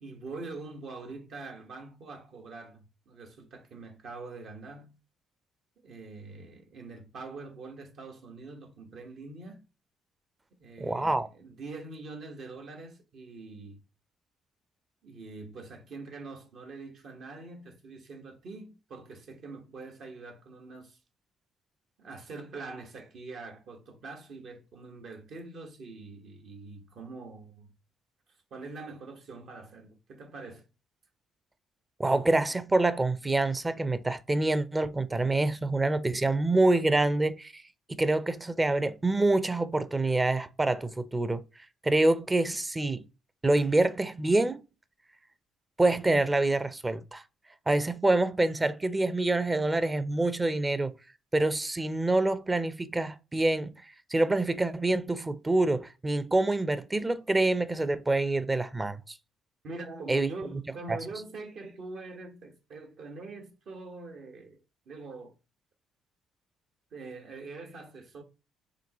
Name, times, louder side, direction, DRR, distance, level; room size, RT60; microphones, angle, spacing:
voice 1, 0.0-4.9 5.8-9.6 10.6-13.8 15.0-21.0 22.0-27.7 28.5-30.7 59.6-64.6 64.9-65.4 66.9-68.2, right 3 dB, 65° right, 1.4 m, -44 dB
voice 2, 10.8-11.3 32.0-37.6 37.9-41.4 41.8-43.0 43.4-44.6 45.8-47.2 47.7-51.0 51.3-59.2 60.1-60.6 60.9-61.0, right 2 dB, 20° right, 0.6 m, -26 dB
5.1 x 3.3 x 3.0 m
supercardioid pair, 65°, 0 cm